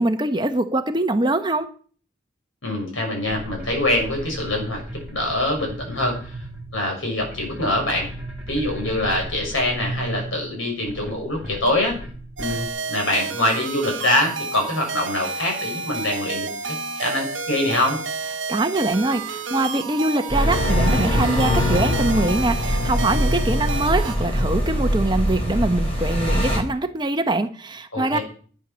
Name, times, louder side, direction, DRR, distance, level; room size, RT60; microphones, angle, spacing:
voice 1, 0.0-1.7 18.5-28.2, right 2 dB, 20° right, 8 dB, 0.9 m, -23 dB
voice 2, 2.6-6.3 6.7-8.1 8.5-11.9 12.4-18.0 27.9-28.2, left 1 dB, 85° left, 1 dB, 6.4 m, -24 dB
sound 1, 3.2-12.7, right 1 dB, 5° right, 2.6 m, -36 dB
sound 2, 12.4-24.2, right 4 dB, 70° right, 1.4 m, -30 dB
sound 3, 20.3-26.6, equal, 30° left, 3.9 m, -22 dB
11.5 x 9.0 x 6.2 m, 0.44 s
head